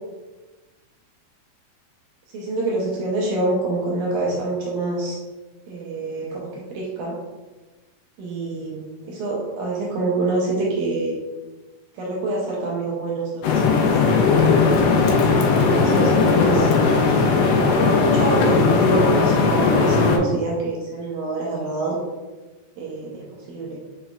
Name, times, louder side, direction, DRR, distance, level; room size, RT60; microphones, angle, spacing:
voice 1, 2.3-5.2 5.7-7.2 8.2-11.2 11.9-13.9 15.3-16.7 17.2-22.0 22.8-23.8, right 2 dB, 80° right, -4 dB, 1.8 m, -26 dB
sound 1, 13.4-20.2, left 4 dB, 90° left, 2.4 m, -18 dB
5.9 x 3.2 x 2.4 m, 1.2 s
omnidirectional pair, 4.1 m